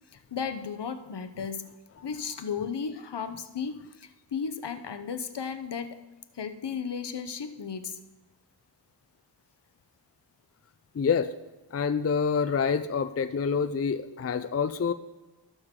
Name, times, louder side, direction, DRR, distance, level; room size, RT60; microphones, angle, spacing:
voice 1, 0.3-1.7 2.0-6.0 6.3-8.0, left 6 dB, 65° left, 9 dB, 0.8 m, -34 dB
voice 2, 10.9-11.3 11.7-14.9, left 6 dB, 35° left, 10 dB, 0.4 m, -27 dB
18.5 x 6.5 x 3.7 m, 1.1 s
wide cardioid pair, 85°, 44 cm